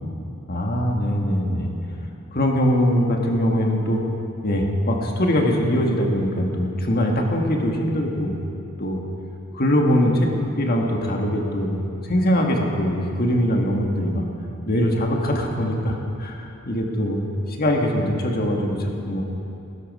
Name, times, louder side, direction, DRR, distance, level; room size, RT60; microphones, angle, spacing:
voice 1, 0.5-1.7 2.3-4.0 4.4-8.4 8.8-9.0 9.5-14.3 14.7-17.2 17.5-19.2, equal, 45° left, 1 dB, 1.7 m, -22 dB
20.0 x 12.5 x 5.4 m, 3.0 s
head